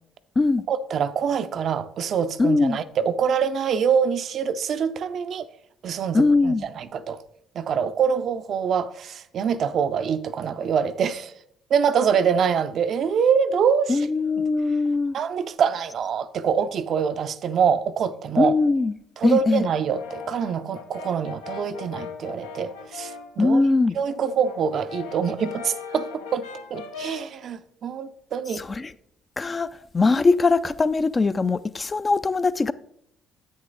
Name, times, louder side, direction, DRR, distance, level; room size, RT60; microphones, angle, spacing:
voice 1, 0.7-5.5 5.8-7.2 7.5-11.3 11.7-14.1 14.4-14.5 15.1-18.6 19.2-23.6 23.9-28.6, right 7 dB, 55° right, 0.4 m, -25 dB
voice 2, 2.4-2.8 6.1-6.7 13.9-15.1 18.4-18.9 19.2-19.6 23.4-24.0 28.6-28.9 29.4-29.7 29.9-32.7, left 3 dB, 30° left, 0.4 m, -21 dB
Brass instrument, 19.7-23.4 23.8-27.4, left 6 dB, 80° left, 0.6 m, -39 dB
8.1 x 6.7 x 3.9 m
hypercardioid pair, 50°, 0 cm